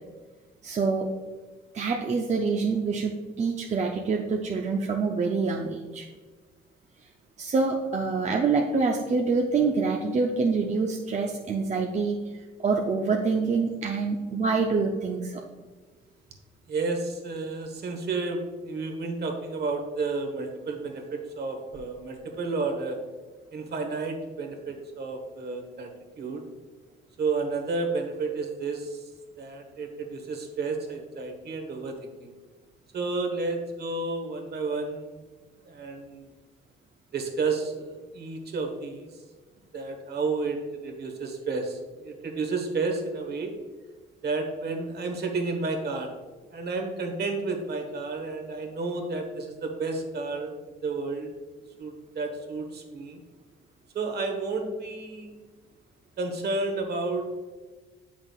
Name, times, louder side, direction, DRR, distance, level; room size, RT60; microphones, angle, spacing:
voice 1, 0.6-1.1 1.7-6.1 7.4-15.4, right 4 dB, 35° right, 1 dB, 0.6 m, -26 dB
voice 2, 16.7-23.0 23.5-25.9 26.2-26.4 27.2-29.0 29.4-32.0 32.2-32.3 32.9-35.2 35.7-36.3 37.1-39.1 39.7-43.5 44.2-46.1 46.5-50.5 50.8-51.3 51.8-53.2 53.9-55.3 56.2-57.3, right 3 dB, 55° right, 4 dB, 1.3 m, -31 dB
7.9 x 6.0 x 2.4 m, 1.3 s
cardioid pair, 90°, 20 cm